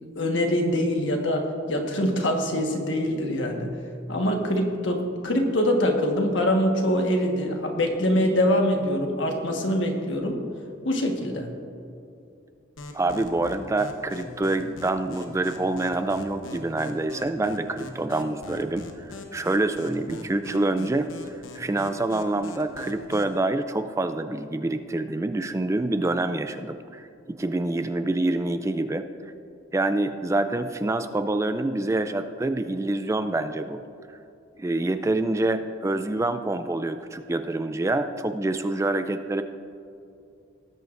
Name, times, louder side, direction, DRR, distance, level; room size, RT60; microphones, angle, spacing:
voice 1, 0.1-3.7 4.1-10.4 10.8-11.5, left 1 dB, 70° left, 2 dB, 1.4 m, -24 dB
sound 1, 12.8-23.4, left 2 dB, 90° left, 1.0 m, -42 dB
voice 2, 12.9-29.3 29.7-33.8 34.1-34.2 34.6-39.4, right 2 dB, 15° right, 10 dB, 0.3 m, -26 dB
18.5 x 9.1 x 2.6 m, 2.6 s
head